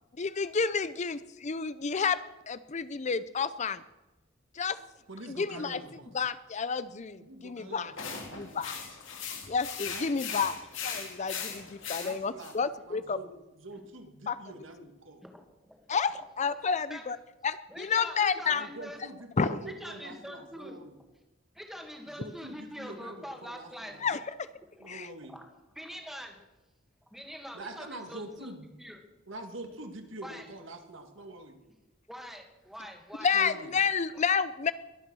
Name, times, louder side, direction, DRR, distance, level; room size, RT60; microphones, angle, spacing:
voice 1, 0.2-2.2 2.5-3.8 4.5-4.8 5.3-5.8 6.1-7.9 8.4-8.8 9.5-10.5 10.8-13.2 14.3-14.4 15.9-17.2 17.4-18.7 19.4-19.6 24.0-24.2 24.9-25.1 33.2-34.7, left 5 dB, 35° left, 14 dB, 0.5 m, -30 dB
voice 2, 5.1-6.1 7.2-8.7 9.9-10.4 11.9-13.3 13.6-15.2 18.5-21.0 22.1-24.0 24.8-25.3 27.5-28.7 29.3-31.6 33.3-33.7, right 2 dB, 65° right, 5 dB, 2.0 m, -45 dB
sound 1, 8.0-12.5, left 6 dB, 65° left, 3.0 m, -39 dB
voice 3, 15.2-15.8 16.7-17.0 17.7-19.0 19.6-20.8 21.5-24.0 24.8-24.9 25.3-26.4 27.1-28.5 28.8-29.0 30.2-30.5 32.1-33.3, equal, ahead, 3 dB, 2.0 m, -44 dB
22.0 x 9.1 x 6.2 m, 1.0 s
head